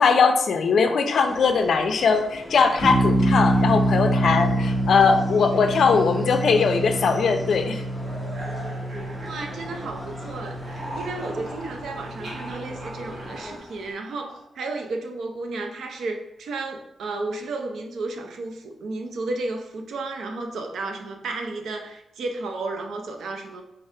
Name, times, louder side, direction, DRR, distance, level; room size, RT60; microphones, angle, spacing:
voice 1, 0.0-7.8, left 5 dB, 65° left, 6 dB, 0.4 m, -20 dB
sound 1, 1.2-13.6, equal, ahead, 0.6 m, -41 dB
sound 2, 2.8-13.3, right 1 dB, 20° left, 1.1 m, -26 dB
sound 3, 6.7-10.2 10.4-14.5, right 1 dB, 60° right, 1.0 m, -40 dB
voice 2, 9.2-23.6, right 3 dB, 85° right, 5 dB, 0.5 m, -33 dB
3.8 x 3.3 x 2.7 m, 0.85 s
wide cardioid pair, 135°, 0 cm